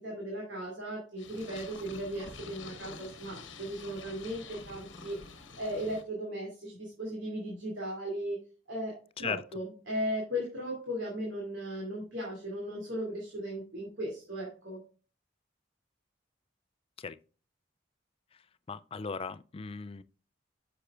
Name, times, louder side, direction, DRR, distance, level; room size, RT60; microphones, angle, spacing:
voice 1, 0.0-5.2 5.6-8.4 8.7-14.8, equal, 70° right, 2.7 m, -37 dB
Purr, 1.2-6.0, left 4 dB, 75° left, 1.0 m, -47 dB
voice 2, 18.7-20.0, left 5 dB, 30° left, 0.4 m, -37 dB
9.8 x 6.8 x 2.4 m
head